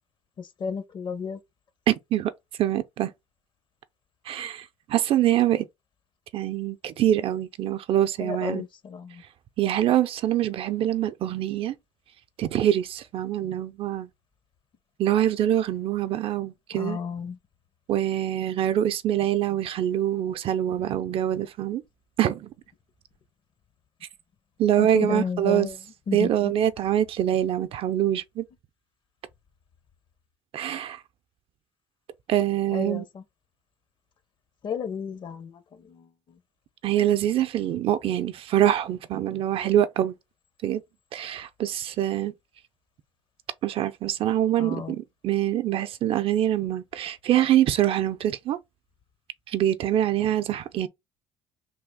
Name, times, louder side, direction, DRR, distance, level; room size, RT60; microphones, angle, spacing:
voice 1, 0.4-1.4 8.2-9.2 16.7-17.4 24.8-25.8 26.1-26.5 32.7-33.2 34.6-36.4 44.6-45.0, left 6 dB, 50° left, 0.7 m, -33 dB
voice 2, 1.9-2.3 2.6-3.1 4.3-5.7 6.3-8.6 9.6-11.8 12.4-14.1 15.0-17.0 17.9-21.8 22.2-22.5 24.6-25.7 26.1-28.5 30.5-31.0 32.3-33.0 36.8-40.1 40.6-40.8 41.1-42.3 43.6-48.6 49.5-50.9, right 11 dB, 60° right, 0.5 m, -24 dB
3.4 x 2.3 x 3.5 m
cardioid pair, 95°, 11 cm